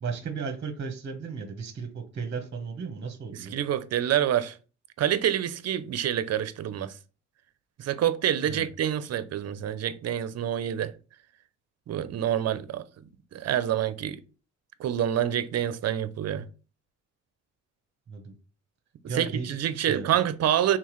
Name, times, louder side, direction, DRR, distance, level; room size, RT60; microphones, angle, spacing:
voice 1, 0.0-3.6 8.5-8.7 18.1-18.3 19.1-20.1, right 5 dB, 35° right, 1.0 m, -35 dB
voice 2, 3.3-4.6 5.0-6.9 7.8-10.9 11.9-12.9 13.3-14.2 14.8-16.5 19.0-20.8, right 10 dB, 55° right, 0.6 m, -27 dB
4.5 x 3.7 x 3.1 m
cardioid pair, 90°, 30 cm